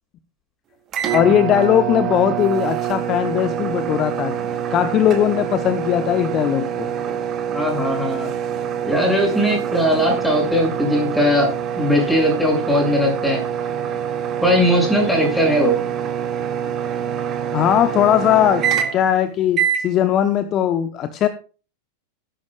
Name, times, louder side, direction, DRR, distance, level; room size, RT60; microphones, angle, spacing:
sound 1, 0.9-19.2 19.5-19.9, right 9 dB, 30° right, 2.0 m, -25 dB
voice 1, 1.1-4.3 4.7-6.9 15.1-15.2 17.5-18.6 18.9-21.3, left 10 dB, 30° left, 11 dB, 0.9 m, -19 dB
voice 2, 7.5-8.3 8.8-13.4 14.4-15.8, equal, 5° left, 1 dB, 6.7 m, -19 dB
18.0 x 10.5 x 2.4 m, 0.35 s
figure-of-eight pair, 90°, 0 cm